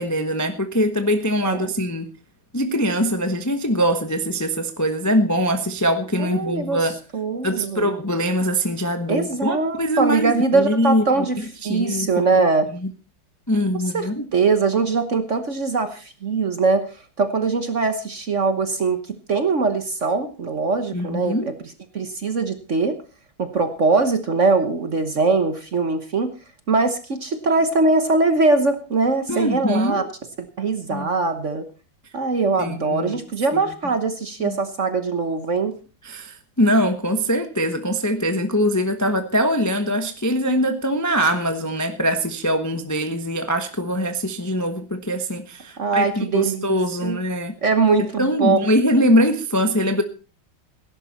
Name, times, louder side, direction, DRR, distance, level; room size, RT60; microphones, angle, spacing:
voice 1, 0.0-2.1 2.5-7.0 7.4-11.0 11.7-12.1 12.3-12.4 13.5-14.3 20.9-21.5 29.3-30.1 30.9-31.1 32.6-33.2 33.5-33.6 34.4-34.6 36.0-47.5 48.2-50.0, equal, 15° left, 7 dB, 0.7 m, -22 dB
voice 2, 6.2-6.9 7.1-7.9 9.1-12.7 13.9-16.8 17.2-19.0 19.3-23.0 23.4-26.3 26.7-30.0 30.6-31.6 32.1-35.8 45.8-46.8 47.0-47.2 47.6-48.6, right 4 dB, 45° right, 9 dB, 1.2 m, -21 dB
17.5 x 11.0 x 4.2 m, 0.34 s
omnidirectional pair, 2.3 m